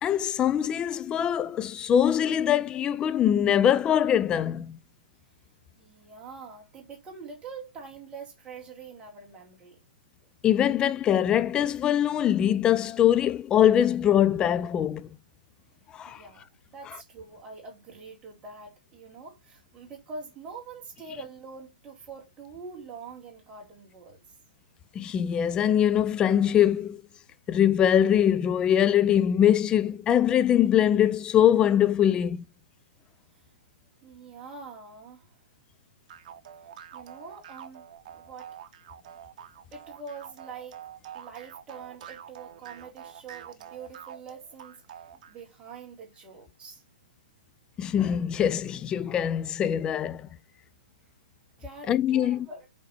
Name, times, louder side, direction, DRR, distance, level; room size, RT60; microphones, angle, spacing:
voice 1, 0.0-4.8 10.4-15.1 15.9-16.2 25.0-27.0 27.5-32.4 47.8-50.3 51.9-52.5, left 10 dB, 20° left, 0.4 m, -23 dB
voice 2, 5.7-9.8 16.0-16.5 16.7-24.3 34.0-35.4 36.9-37.8 38.1-38.6 39.7-45.0 45.3-46.8 51.6-52.7, right 4 dB, 20° right, 2.5 m, -44 dB
sound 1, 36.1-45.4, right 9 dB, 50° right, 1.2 m, -46 dB
5.8 x 4.4 x 4.3 m
hypercardioid pair, 130°, 5 cm